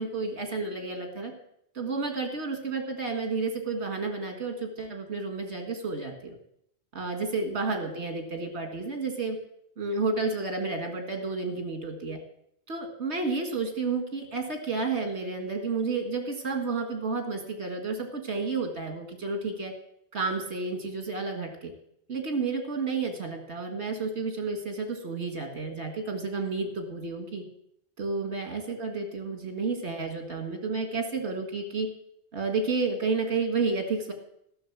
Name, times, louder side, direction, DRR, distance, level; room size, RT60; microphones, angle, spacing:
voice 1, 0.0-1.3 1.8-6.4 6.9-9.4 9.8-12.2 12.7-19.7 20.1-21.7 22.1-27.4 28.0-31.9 32.3-34.1, right 4 dB, 70° right, 5 dB, 2.1 m, -31 dB
12.5 x 6.5 x 7.3 m, 0.74 s
omnidirectional pair, 1.2 m